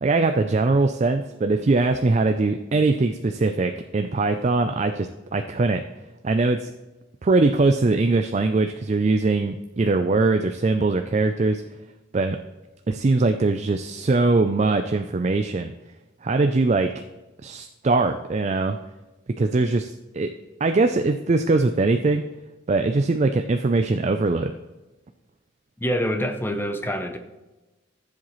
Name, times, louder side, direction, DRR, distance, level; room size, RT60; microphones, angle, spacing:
voice 1, 0.0-5.8 6.2-6.7 7.2-11.6 12.1-12.4 12.9-15.7 16.2-16.9 17.4-18.8 19.4-20.3 20.6-22.2 22.7-24.5, right 3 dB, 35° right, 7 dB, 0.4 m, -21 dB
voice 2, 25.8-27.2, equal, 10° left, 7 dB, 0.7 m, -26 dB
14.5 x 7.4 x 3.1 m, 1.1 s
head